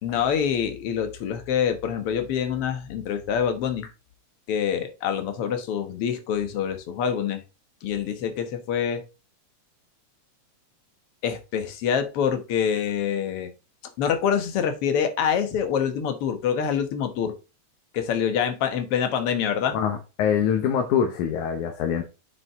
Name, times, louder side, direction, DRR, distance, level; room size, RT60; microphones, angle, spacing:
voice 1, 0.0-3.9 4.5-7.4 7.8-9.0 11.2-13.5 14.0-17.3 17.9-19.8, left 8 dB, 55° left, 8 dB, 2.0 m, -26 dB
voice 2, 19.7-22.0, left 8 dB, 85° left, 5 dB, 2.5 m, -24 dB
7.7 x 6.0 x 3.6 m, 0.30 s
omnidirectional pair, 3.4 m